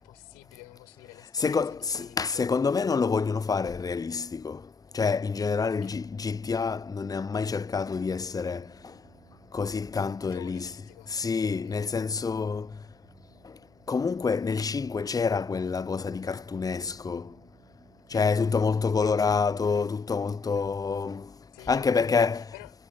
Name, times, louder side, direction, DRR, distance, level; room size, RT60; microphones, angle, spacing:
voice 1, 0.0-2.5 5.8-6.0 10.2-11.1 11.6-11.9 18.1-18.3 19.0-19.1 21.5-22.1 22.3-22.7, left 36 dB, 70° left, 6.7 m, -49 dB
voice 2, 1.4-4.6 4.9-8.6 9.5-10.7 11.1-12.7 13.9-17.3 18.1-21.3 21.7-22.4, left 5 dB, 20° left, 0.7 m, -27 dB
sound 1, 5.3-21.3, right 9 dB, 50° right, 4.1 m, -60 dB
hypercardioid pair, 60°, 18 cm